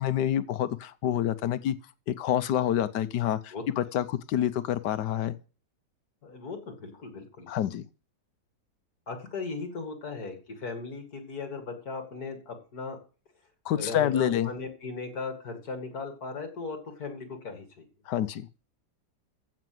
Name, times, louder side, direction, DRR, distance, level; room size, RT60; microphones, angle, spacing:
voice 1, 0.0-1.8 2.1-5.3 7.5-7.8 13.6-14.5 18.1-18.5, left 11 dB, 85° left, 1.4 m, -27 dB
voice 2, 6.2-7.5 9.1-13.0 13.8-17.8, left 4 dB, 65° left, 2.7 m, -37 dB
15.5 x 5.8 x 7.8 m
omnidirectional pair, 1.8 m